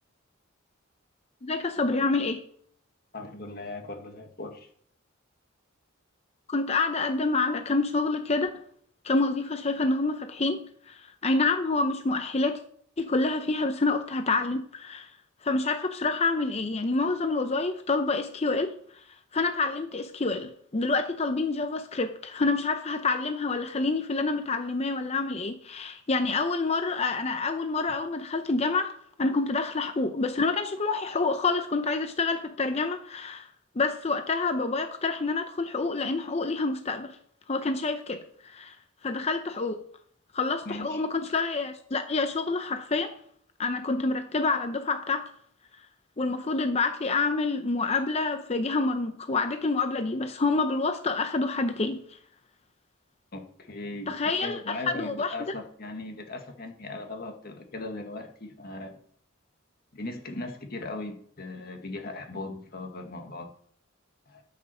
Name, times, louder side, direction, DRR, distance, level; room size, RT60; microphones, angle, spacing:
voice 1, 1.4-2.4 6.5-8.6 9.0-12.6 13.0-15.1 15.4-18.7 19.3-28.9 29.2-33.5 33.8-37.2 37.5-38.8 39.0-39.8 40.3-43.2 43.6-45.3 46.2-52.2 54.1-55.4, left 3 dB, 30° left, 0.6 m, -27 dB
voice 2, 3.1-4.7 40.6-41.0 53.3-54.1 54.4-59.0 59.9-63.5 64.3-64.4, left 2 dB, 45° left, 1.7 m, -38 dB
13.0 x 5.9 x 6.1 m
head